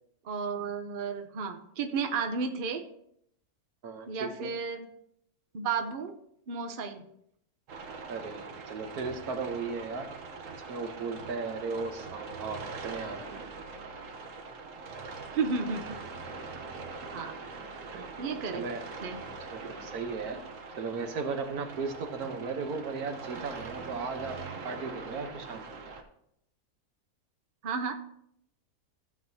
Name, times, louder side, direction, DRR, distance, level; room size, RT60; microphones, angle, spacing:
voice 1, 0.2-2.8 4.1-4.9 5.5-6.1 6.5-7.1 15.3-16.0 17.1-17.3 18.2-18.6 19.0-19.2 27.6-27.9, right 5 dB, 45° right, 5 dB, 0.8 m, -32 dB
voice 2, 3.8-4.5 8.1-10.1 10.7-13.4 17.9-18.8 19.5-20.4 20.8-24.4 24.6-25.6, right 4 dB, 80° right, 6 dB, 1.5 m, -36 dB
sound 1, 7.7-26.0, right 4 dB, 60° right, 1.3 m, -42 dB
15.0 x 7.6 x 2.7 m, 0.74 s
omnidirectional pair, 1.6 m